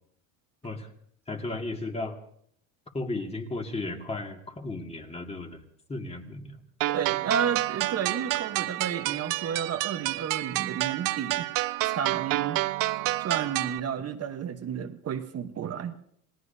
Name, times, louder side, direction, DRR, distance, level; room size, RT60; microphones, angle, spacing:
voice 1, 1.3-2.2 2.9-5.6 5.9-6.6, left 2 dB, 15° left, 3 dB, 2.1 m, -34 dB
sound 1, 6.8-13.8, right 18 dB, 55° right, 0.6 m, -29 dB
voice 2, 6.9-11.5 11.9-12.6 13.2-15.9, right 8 dB, 35° right, 7 dB, 1.1 m, -32 dB
29.0 x 18.0 x 2.8 m, 0.67 s
supercardioid pair, 120°, 41 cm